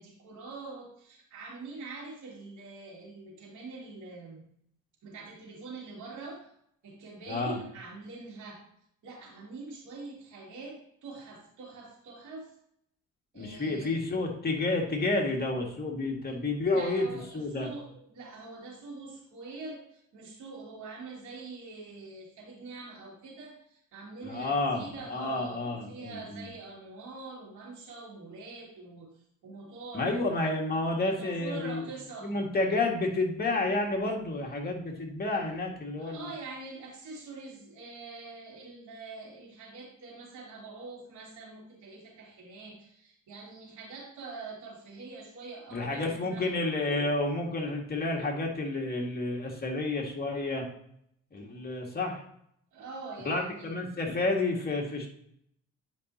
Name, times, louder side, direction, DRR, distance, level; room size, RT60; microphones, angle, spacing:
voice 1, 0.0-4.5 5.0-6.5 6.8-8.6 9.0-12.5 13.3-13.9 16.6-29.1 29.4-30.4 31.1-32.3 36.0-46.6 52.7-53.7, right 3 dB, 75° right, -6 dB, 2.8 m, -44 dB
voice 2, 7.3-7.6 13.3-17.1 17.3-17.7 24.2-26.5 29.9-31.8 32.2-36.3 45.7-50.7 51.3-52.2 53.3-55.1, left 2 dB, 30° left, 0 dB, 2.0 m, -30 dB
9.2 x 5.4 x 2.8 m, 0.71 s
cardioid pair, 90°, 30 cm